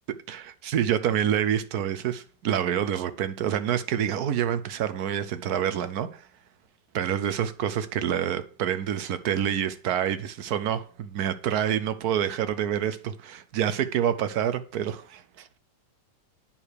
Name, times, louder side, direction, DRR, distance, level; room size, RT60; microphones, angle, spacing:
voice 1, 0.3-6.2 6.9-15.5, right 9 dB, 65° right, 1.1 m, -27 dB
8.7 x 4.8 x 6.6 m
omnidirectional pair, 2.0 m